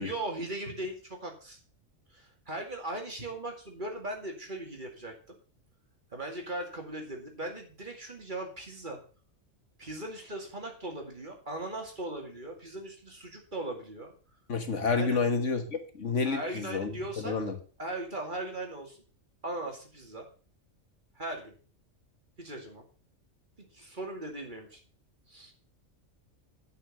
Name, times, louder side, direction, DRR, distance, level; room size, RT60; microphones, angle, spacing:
voice 1, 0.0-1.6 2.1-5.1 6.1-9.0 9.8-14.1 14.9-15.2 16.3-17.4 17.8-19.0 19.4-20.3 21.2-21.5 22.4-22.8 23.7-24.8 25.3-25.5, right 1 dB, 40° right, 2 dB, 2.5 m, -38 dB
voice 2, 14.5-17.6, left 4 dB, 70° left, 7 dB, 1.8 m, -30 dB
10.5 x 5.6 x 7.3 m, 0.39 s
omnidirectional pair, 1.3 m